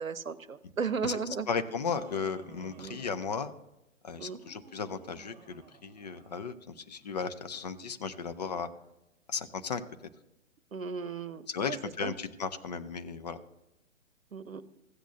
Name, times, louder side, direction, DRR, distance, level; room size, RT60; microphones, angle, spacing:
voice 1, 0.0-1.5 2.8-3.0 4.2-4.4 10.7-11.8 12.0-12.1 14.3-14.6, right 5 dB, 85° right, 16 dB, 0.8 m, -35 dB
voice 2, 1.5-3.5 4.0-8.7 9.3-9.8 11.5-13.4, left 5 dB, 35° left, 9 dB, 0.5 m, -35 dB
Laughter, 1.6-3.7 4.2-6.5, right 5 dB, 30° right, 1.4 m, -55 dB
15.5 x 8.1 x 2.7 m, 0.92 s
figure-of-eight pair, 125°, 40 cm